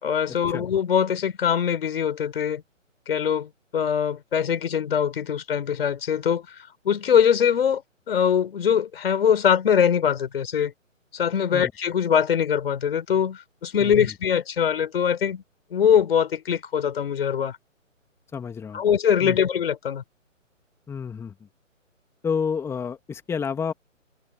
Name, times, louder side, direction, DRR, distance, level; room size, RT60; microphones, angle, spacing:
voice 1, 0.0-2.6 3.1-6.5 6.8-10.7 11.1-15.4 15.7-17.6 18.7-20.0, left 8 dB, 45° left, 4.7 m, -22 dB
voice 2, 18.3-18.8 19.2-19.4 20.9-21.3 22.2-23.7, left 6 dB, 5° left, 2.7 m, -29 dB
figure-of-eight pair, 135°, 39 cm